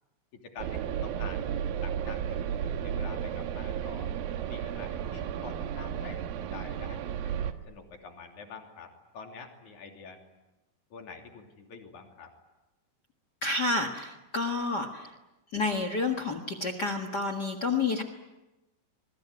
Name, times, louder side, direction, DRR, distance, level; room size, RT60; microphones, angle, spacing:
voice 1, 0.3-1.5 1.8-4.1 4.5-7.3 7.7-10.2 10.9-12.3, left 5 dB, 50° left, 3 dB, 4.2 m, -47 dB
sound 1, 0.6-7.5, right 9 dB, 70° right, 2.9 m, -33 dB
voice 2, 13.4-15.1 15.5-18.0, left 3 dB, 70° left, 9 dB, 0.9 m, -29 dB
27.5 x 22.0 x 9.8 m, 1.0 s
omnidirectional pair, 4.8 m